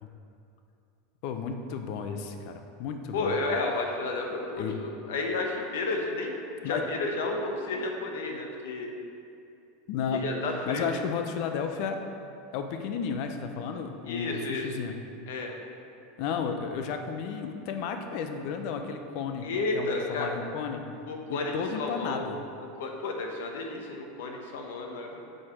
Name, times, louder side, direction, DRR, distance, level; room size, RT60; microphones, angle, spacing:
voice 1, 1.2-3.4 4.6-4.8 6.6-6.9 9.9-10.3 10.7-12.0 12.5-14.9 16.2-19.5 19.7-20.8 21.3-22.4, left 6 dB, 55° left, 6 dB, 0.6 m, -33 dB
voice 2, 3.1-8.9 10.2-10.9 14.1-14.7 15.3-15.5 19.4-20.3 21.1-22.3 22.7-25.2, left 3 dB, 80° left, 2 dB, 0.9 m, -32 dB
6.4 x 4.4 x 4.9 m, 2.6 s
supercardioid pair, 135°, 0 cm